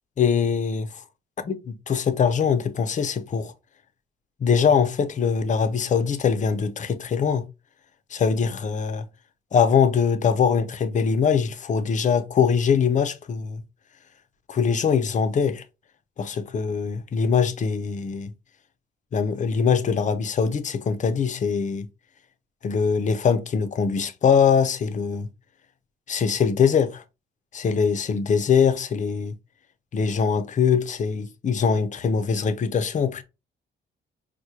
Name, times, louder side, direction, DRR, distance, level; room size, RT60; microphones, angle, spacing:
voice 1, 0.2-1.0 1.4-3.5 4.4-7.4 8.1-9.1 9.5-13.6 14.5-15.6 16.2-18.3 19.1-21.9 22.6-25.3 26.1-27.0 27.5-29.3 29.9-33.2, left 6 dB, 40° left, 0.5 m, -22 dB
4.6 x 2.1 x 2.8 m
cardioid pair, 90°, 20 cm